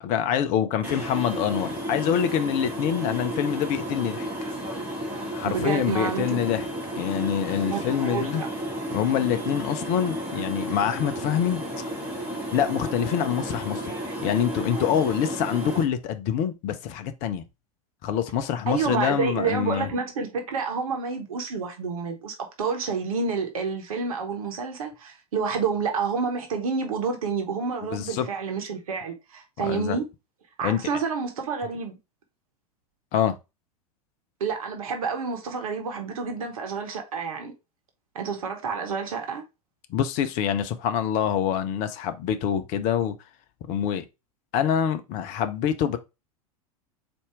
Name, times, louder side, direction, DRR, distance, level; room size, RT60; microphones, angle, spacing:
voice 1, 0.0-4.3 5.3-6.7 7.0-8.4 8.9-11.6 12.5-13.9 14.2-17.4 18.0-19.9 27.9-28.3 29.6-30.0 30.6-30.8 33.1-33.4 39.9-43.2 43.7-44.0 44.5-46.0, left 9 dB, 40° left, 0.6 m, -25 dB
sound 1, 0.8-15.8, equal, 10° right, 2.1 m, -32 dB
voice 2, 5.4-6.4 7.7-8.5 18.7-30.1 30.6-32.0 34.4-37.5 38.1-39.4, right 5 dB, 65° right, 1.0 m, -29 dB
4.2 x 2.6 x 4.6 m
figure-of-eight pair, 85°, 19 cm